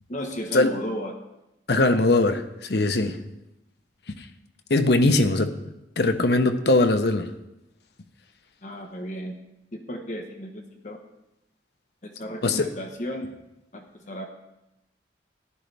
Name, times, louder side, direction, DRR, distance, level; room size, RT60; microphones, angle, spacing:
voice 1, 0.1-1.1 8.6-9.4 9.7-11.0 12.0-13.3 13.7-14.3, equal, 45° left, 3 dB, 1.1 m, -34 dB
voice 2, 1.7-3.2 4.2-4.3 4.7-5.5 6.0-7.3 12.4-12.7, left 2 dB, 65° left, 8 dB, 0.8 m, -21 dB
14.0 x 11.0 x 3.4 m, 0.89 s
head